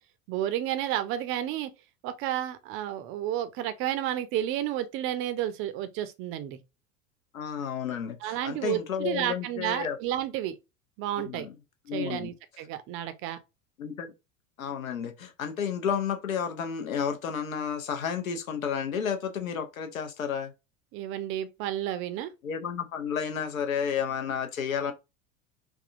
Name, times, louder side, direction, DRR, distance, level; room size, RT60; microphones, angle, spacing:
voice 1, 0.3-1.7 2.0-6.6 8.2-10.6 11.0-11.5 11.9-13.4 20.9-22.3, right 12 dB, 30° right, 0.5 m, -31 dB
voice 2, 7.3-10.0 11.3-11.5 11.9-12.3 13.8-14.1 14.6-20.5 22.4-24.9, left 7 dB, 75° left, 0.8 m, -31 dB
3.5 x 2.2 x 2.5 m
figure-of-eight pair, 80°, 41 cm